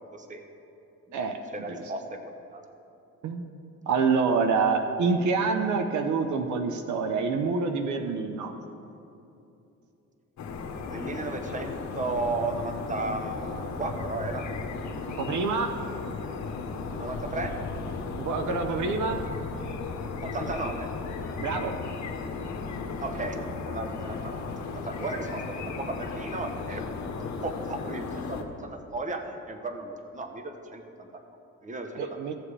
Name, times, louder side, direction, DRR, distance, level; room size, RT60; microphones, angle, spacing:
voice 1, 0.1-0.4 1.1-2.6 10.8-14.5 17.0-17.6 20.2-20.9 23.0-26.8 27.4-31.2 31.6-32.0, right 3 dB, 25° right, 6 dB, 0.9 m, -35 dB
voice 2, 3.9-8.5 15.2-15.7 18.2-19.2 21.4-21.7 32.0-32.3, right 4 dB, 75° right, 6 dB, 0.8 m, -26 dB
sound 1, 10.4-28.4, left 4 dB, 70° left, 1.1 m, -35 dB
15.5 x 7.5 x 3.3 m, 2.8 s
cardioid pair, 90°, 30 cm